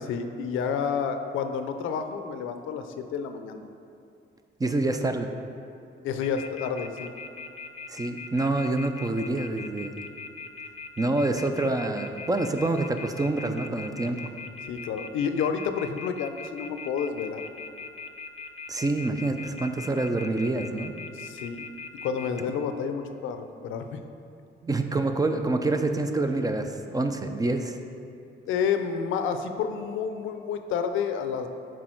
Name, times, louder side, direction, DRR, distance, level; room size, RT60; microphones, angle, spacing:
voice 1, 0.1-3.7 6.0-7.1 14.7-17.5 21.1-21.7 22.0-24.0 28.5-31.5, left 6 dB, 85° left, 7 dB, 0.5 m, -30 dB
voice 2, 4.6-5.3 7.9-10.0 11.0-14.3 18.7-20.9 24.6-27.8, right 2 dB, 20° right, 6 dB, 0.4 m, -27 dB
sound 1, 6.2-22.4, left 5 dB, 30° left, 0.6 m, -40 dB
6.2 x 4.6 x 4.4 m, 2.5 s
cardioid pair, 90°, 20 cm